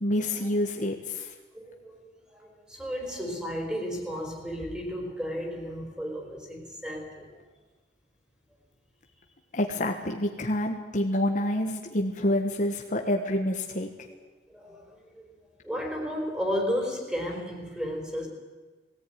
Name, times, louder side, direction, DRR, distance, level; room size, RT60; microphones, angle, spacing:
voice 1, 0.0-1.3 9.5-13.9, left 1 dB, 45° left, 2 dB, 1.5 m, -27 dB
voice 2, 1.5-7.4 14.5-15.3 15.6-18.3, equal, 5° right, 1 dB, 4.7 m, -33 dB
19.5 x 17.5 x 9.5 m, 1.3 s
head